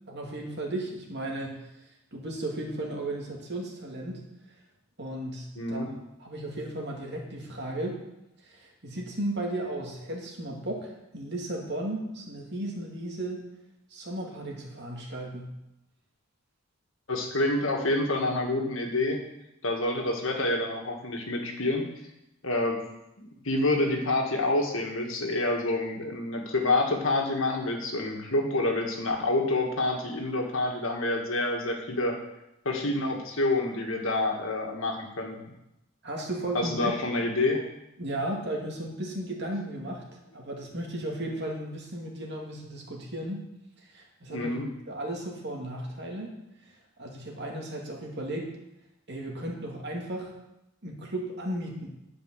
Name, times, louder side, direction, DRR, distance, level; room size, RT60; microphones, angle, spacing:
voice 1, 0.1-1.6 2.1-4.2 5.0-5.8 6.2-8.0 8.4-13.4 13.9-15.5 36.0-37.0 38.0-40.0 40.3-43.4 43.8-44.6 44.9-46.3 47.0-48.5 49.1-50.3 50.8-51.9, right 1 dB, 50° right, 0 dB, 2.3 m, -35 dB
voice 2, 5.6-5.9 17.1-19.2 19.6-21.9 22.4-22.8 23.2-32.2 32.7-35.4 36.5-37.6 44.3-44.7, left 2 dB, 65° left, 2 dB, 1.8 m, -27 dB
11.0 x 5.3 x 7.6 m, 0.89 s
head